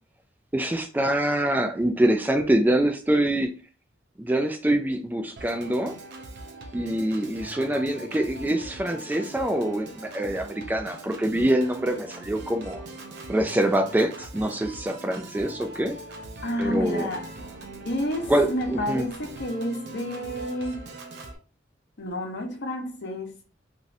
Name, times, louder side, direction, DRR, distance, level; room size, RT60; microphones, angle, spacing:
voice 1, 0.5-3.5 4.2-5.9 6.7-12.8 13.3-16.0 16.6-17.1 18.3-19.1, right 1 dB, 10° right, 0.3 m, -25 dB
Organ, 5.4-21.4, right 2 dB, 60° right, 0.6 m, -41 dB
voice 2, 16.4-17.3 17.8-20.9 22.0-23.4, left 1 dB, 65° left, 0.9 m, -30 dB
3.0 x 2.6 x 2.6 m
head